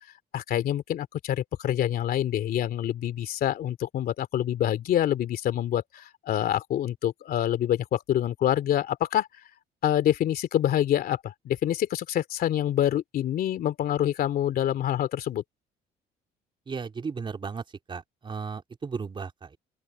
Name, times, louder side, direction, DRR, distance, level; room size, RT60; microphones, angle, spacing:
voice 1, 0.3-9.3 9.8-15.4, left 11 dB, 65° left, 2.9 m, -26 dB
voice 2, 16.7-19.6, right 5 dB, 30° right, 3.7 m, -35 dB
open air
cardioid pair, 110°, 17 cm